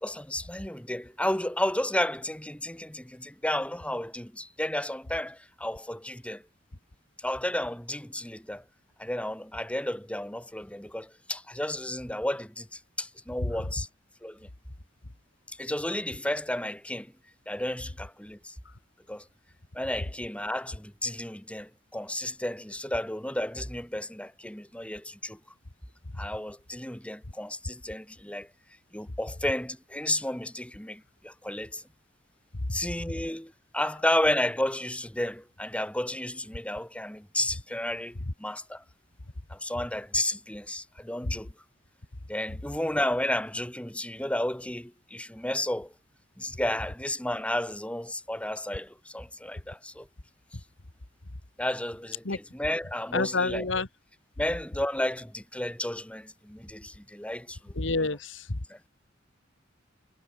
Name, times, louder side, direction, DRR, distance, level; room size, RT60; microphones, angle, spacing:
voice 1, 0.0-6.4 7.2-8.6 9.0-13.9 14.2-14.5 15.6-17.1 17.5-18.5 19.1-19.2 19.7-25.4 26.2-28.5 28.9-31.8 32.7-38.8 39.5-41.5 42.3-45.9 46.4-50.1 51.6-53.7 54.4-57.7 58.1-58.2 58.7-58.8, left 1 dB, 5° left, 2.7 m, -32 dB
voice 2, 53.1-53.9 57.8-58.4, left 3 dB, 75° left, 1.8 m, -28 dB
head